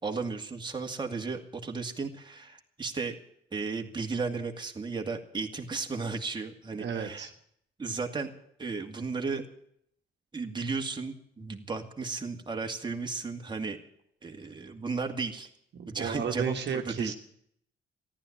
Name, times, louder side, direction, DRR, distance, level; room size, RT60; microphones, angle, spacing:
voice 1, 0.0-3.2 3.5-7.3 7.8-8.3 8.6-9.5 10.3-13.8 14.2-15.5 15.9-17.1, right 4 dB, 25° right, 3 dB, 2.3 m, -34 dB
voice 2, 6.8-7.3 15.7-17.1, right 7 dB, 60° right, 4 dB, 1.7 m, -33 dB
14.5 x 11.5 x 8.7 m, 0.69 s
cardioid pair, 90°, 20 cm